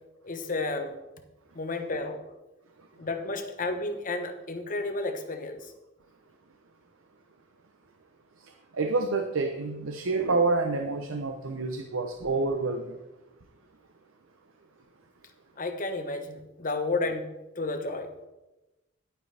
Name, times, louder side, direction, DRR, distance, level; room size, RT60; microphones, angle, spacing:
voice 1, 0.2-0.9 1.5-2.2 3.0-5.7 15.6-18.3, left 2 dB, 40° left, 6 dB, 1.0 m, -32 dB
voice 2, 8.8-12.8, right 3 dB, 75° right, 5 dB, 0.8 m, -28 dB
11.0 x 9.2 x 3.4 m, 1.0 s
head